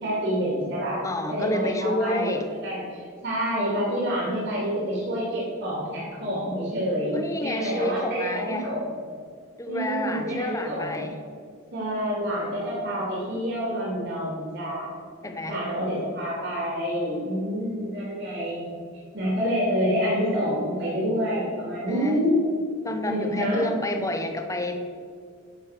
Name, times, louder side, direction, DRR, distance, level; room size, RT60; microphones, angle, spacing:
voice 1, 0.0-2.3 2.6-8.9 9.7-11.1 11.7-15.0 15.5-18.7 19.1-22.5 23.0-23.7, equal, 60° right, -5 dB, 2.8 m, -27 dB
voice 2, 1.0-2.4 7.1-8.7 9.6-11.1 15.2-15.6 21.9-22.2 22.8-24.9, left 1 dB, 15° left, 6 dB, 0.9 m, -29 dB
10.0 x 6.4 x 6.7 m, 2.1 s
head